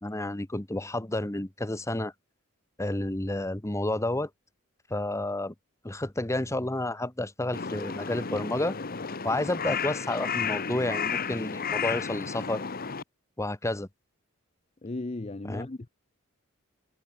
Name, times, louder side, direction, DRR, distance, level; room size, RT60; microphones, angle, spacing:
voice 1, 0.0-2.1 2.8-4.3 4.9-5.5 5.8-8.8 9.2-12.6 13.4-13.9 15.5-15.7, left 1 dB, 15° left, 1.1 m, -30 dB
Crow, 7.5-13.0, left 6 dB, 45° left, 1.2 m, -32 dB
voice 2, 14.8-15.9, left 2 dB, 30° left, 0.7 m, -36 dB
head